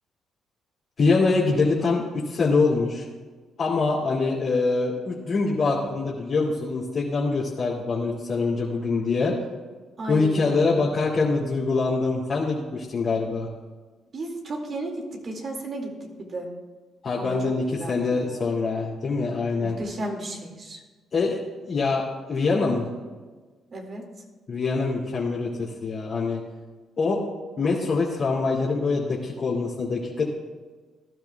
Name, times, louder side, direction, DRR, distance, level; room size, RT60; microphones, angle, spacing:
voice 1, 1.0-3.0 3.6-9.4 10.1-13.5 17.0-19.8 21.1-21.4 21.7-22.9 24.5-26.4 27.0-27.2 27.6-30.2, left 3 dB, 50° left, -6 dB, 2.5 m, -24 dB
voice 2, 10.0-10.8 14.1-16.5 17.2-17.4 17.8-18.4 19.6-20.8 23.7-24.1, right 1 dB, 50° right, 1 dB, 2.2 m, -34 dB
18.0 x 12.0 x 2.3 m, 1.3 s
cardioid pair, 90°, 0 cm